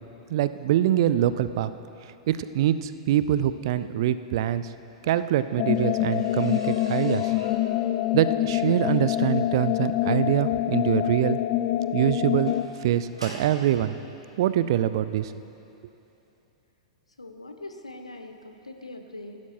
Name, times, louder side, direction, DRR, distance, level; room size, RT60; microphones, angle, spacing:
voice 1, 0.3-1.7 2.3-4.6 5.1-7.3 8.1-11.4 11.9-12.5 12.8-13.9 14.4-15.3, right 12 dB, 55° right, 14 dB, 0.4 m, -24 dB
sound 1, 4.8-13.7 14.6-14.7 15.2-15.5 15.7-15.8 16.2-16.3, right 1 dB, 85° right, 2.4 m, -47 dB
sound 2, 5.6-12.7, left 14 dB, 45° left, 0.4 m, -26 dB
voice 2, 17.2-19.4, left 2 dB, 85° left, 6 dB, 0.8 m, -42 dB
16.0 x 11.5 x 3.0 m, 2.8 s
figure-of-eight pair, 100°, 3 cm